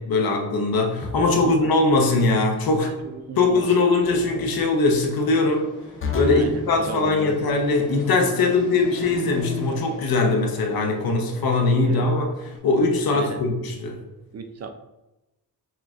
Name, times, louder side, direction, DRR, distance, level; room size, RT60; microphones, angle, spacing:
voice 1, 0.0-2.9 3.4-5.7 6.1-12.3 12.6-14.0, left 3 dB, 65° left, 3 dB, 0.8 m, -21 dB
sound 1, 1.0-1.5 4.0-4.5 6.0-6.5 9.0-9.7, left 3 dB, 35° left, 0.5 m, -30 dB
Fixed-wing aircraft airplane, 2.4-12.6, right 1 dB, 10° left, 1.3 m, -41 dB
voice 2, 2.8-3.7 6.3-7.4 8.4-8.5 10.9-11.1 11.8-12.1 13.1-13.4 14.3-14.7, right 4 dB, 45° right, 7 dB, 0.4 m, -35 dB
6.2 x 2.4 x 2.4 m, 0.97 s
cardioid pair, 100°, 38 cm